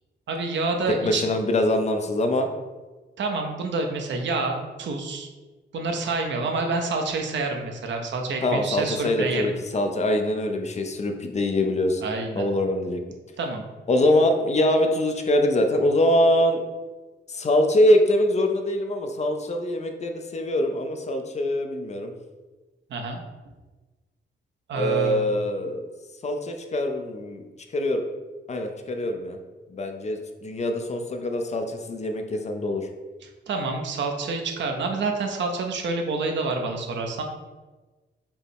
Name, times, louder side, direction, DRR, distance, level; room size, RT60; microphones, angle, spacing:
voice 1, 0.3-1.2 3.2-5.3 5.7-9.5 12.0-12.5 13.4-13.7 22.9-23.2 24.7-25.3 33.2-37.2, right 3 dB, 70° right, 3 dB, 0.6 m, -28 dB
voice 2, 0.9-2.5 8.4-12.1 12.4-13.0 13.9-16.6 17.3-22.1 24.7-25.9 26.2-27.4 27.7-28.0 28.5-29.4 29.7-32.9, left 1 dB, 35° left, 5 dB, 0.4 m, -23 dB
5.3 x 2.0 x 4.5 m, 1.3 s
wide cardioid pair, 130°, 20 cm